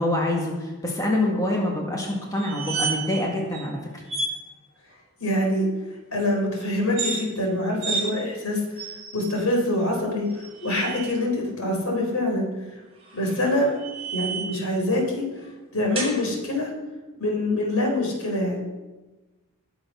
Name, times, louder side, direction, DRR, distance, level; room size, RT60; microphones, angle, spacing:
voice 1, 0.0-4.0, left 1 dB, 15° left, -1 dB, 1.9 m, -26 dB
sound 1, 2.3-3.2 3.5-3.6 4.1-4.3 6.8-7.2 7.8-8.1 8.8-9.3 10.3-11.1 13.0-14.6 15.9-16.2, right 4 dB, 25° right, 5.4 m, -31 dB
voice 2, 5.2-5.7 6.1-8.8 9.1-12.8 13.1-13.7 14.1-15.2 15.7-16.7 17.2-18.6, left 1 dB, 80° left, 0 dB, 4.5 m, -25 dB
20.5 x 7.1 x 5.8 m, 1.2 s
head